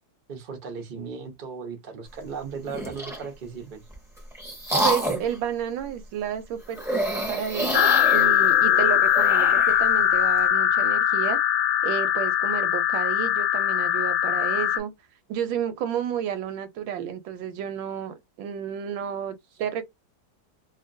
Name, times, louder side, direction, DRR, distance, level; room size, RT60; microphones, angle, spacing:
voice 1, 0.3-3.8, right 5 dB, 60° right, 0.5 m, -36 dB
sound 1, 2.6-3.3 3.9-5.4 6.7-9.8, right 1 dB, ahead, 0.7 m, -28 dB
voice 2, 4.8-11.4 11.8-14.9 15.3-19.8, right 9 dB, 85° right, 1.3 m, -31 dB
sound 2, 7.7-14.8, left 10 dB, 85° left, 1.3 m, -21 dB
2.8 x 2.6 x 2.6 m
omnidirectional pair, 2.1 m